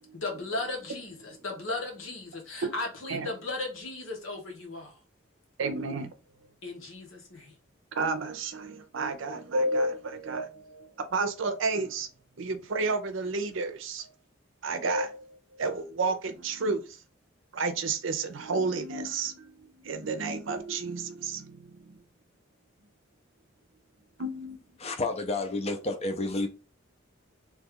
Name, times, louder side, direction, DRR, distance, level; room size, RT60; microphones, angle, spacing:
voice 1, 0.1-5.0 6.6-7.5, left 2 dB, 80° left, 1.2 m, -36 dB
voice 2, 5.6-6.1 8.0-12.1 12.4-14.1 14.6-16.8 17.5-19.5 19.8-22.0 24.2-24.6, right 3 dB, 65° right, 0.6 m, -31 dB
voice 3, 24.8-26.5, left 2 dB, 30° left, 0.5 m, -30 dB
3.1 x 2.4 x 3.5 m
head